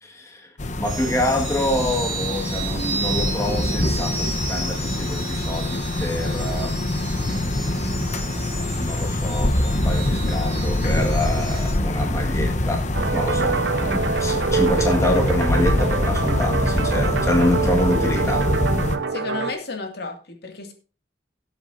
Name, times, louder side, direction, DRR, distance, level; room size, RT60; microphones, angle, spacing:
voice 1, 0.0-0.5 0.8-6.8 7.2-12.9 13.1-18.5, left 1 dB, 15° left, 1.8 m, -27 dB
sound 1, 0.6-19.0, left 1 dB, 40° left, 1.0 m, -24 dB
sound 2, 0.8-11.7, right 3 dB, 25° right, 7.1 m, -33 dB
sound 3, 12.9-19.5, right 5 dB, 70° right, 0.6 m, -25 dB
voice 2, 19.1-20.7, left 3 dB, 60° left, 2.4 m, -32 dB
18.5 x 8.0 x 2.7 m
head